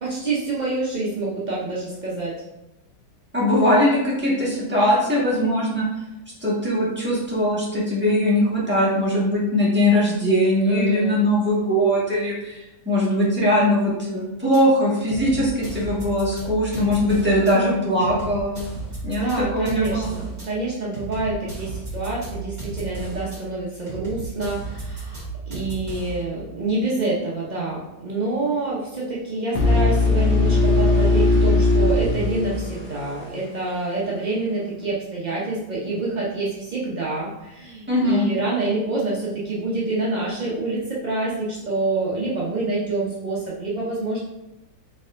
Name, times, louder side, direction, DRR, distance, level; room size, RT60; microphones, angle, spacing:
voice 1, 0.0-2.4 10.6-11.2 19.2-44.2, right 2 dB, 65° right, -6 dB, 0.4 m, -27 dB
voice 2, 3.3-5.8 6.4-18.5 19.0-20.1 37.9-38.3, left 1 dB, 5° right, -7 dB, 1.2 m, -21 dB
sound 1, 14.5-14.6 15.1-17.5 18.0-20.5 20.9-23.4 23.9-26.2, right 3 dB, 25° right, 1.6 m, -34 dB
sound 2, 29.5-33.4, left 2 dB, 75° left, 1.5 m, -19 dB
4.7 x 4.2 x 2.5 m, 0.93 s
omnidirectional pair, 1.9 m